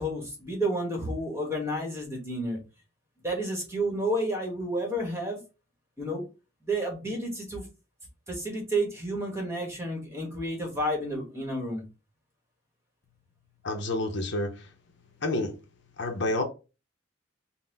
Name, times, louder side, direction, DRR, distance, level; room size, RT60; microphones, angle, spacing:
voice 1, 0.0-2.6 3.2-5.4 6.0-6.2 6.6-7.7 8.3-11.8, right 1 dB, 15° right, 1.2 m, -30 dB
voice 2, 13.6-14.5 15.2-15.5 16.0-16.4, left 2 dB, 65° left, 0.6 m, -28 dB
4.0 x 2.0 x 3.8 m
head